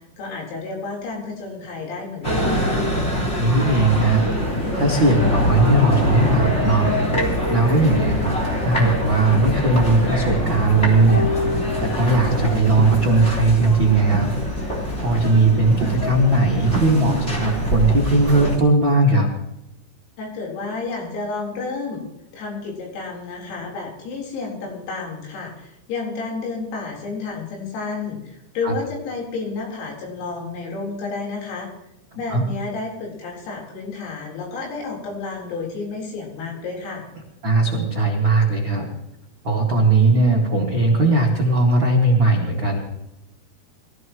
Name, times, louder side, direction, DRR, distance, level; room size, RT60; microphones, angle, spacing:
voice 1, 0.2-2.8 20.2-22.0 22.3-31.7 32.2-37.0, left 4 dB, 85° left, -2 dB, 6.8 m, -31 dB
sound 1, 2.2-18.6, equal, 15° left, 2.6 m, -24 dB
voice 2, 3.1-4.3 4.7-6.9 7.2-14.3 14.6-19.3 28.6-28.7 32.3-32.4 37.4-38.9 39.4-42.8, right 2 dB, 65° right, -2 dB, 1.2 m, -18 dB
sound 2, 11.1-12.7 13.0-13.1, left 4 dB, 10° right, 1.2 m, -28 dB
21.5 x 15.5 x 3.1 m, 0.88 s
omnidirectional pair, 6.0 m